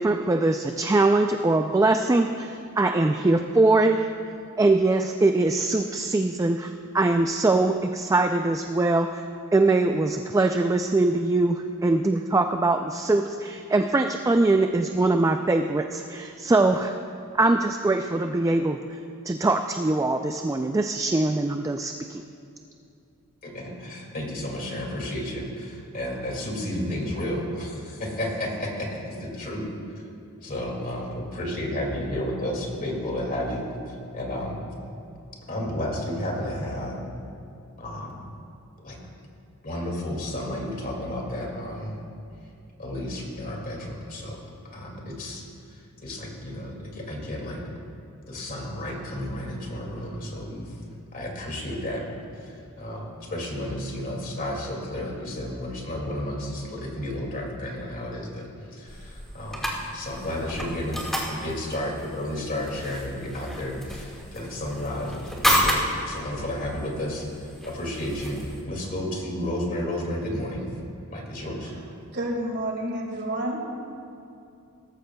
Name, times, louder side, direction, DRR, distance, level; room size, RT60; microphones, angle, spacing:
voice 1, 0.0-4.1 4.6-9.2 9.5-17.0 17.3-19.0 19.2-22.2, right 2 dB, 15° right, 6 dB, 0.3 m, -22 dB
voice 2, 23.4-29.7 30.4-34.6 35.5-37.0 37.8-38.1 38.8-39.0 39.6-42.0 42.8-44.4 44.7-45.4 45.7-47.6 48.3-50.7 51.1-52.0 52.4-59.7 59.9-70.7 71.1-71.7, left 1 dB, 40° left, -1 dB, 2.3 m, -32 dB
sound 1, 58.9-68.6, equal, ahead, 1.7 m, -31 dB
voice 3, 72.1-73.6, right 1 dB, 50° right, 1 dB, 1.9 m, -29 dB
18.0 x 14.5 x 2.3 m, 2.6 s
head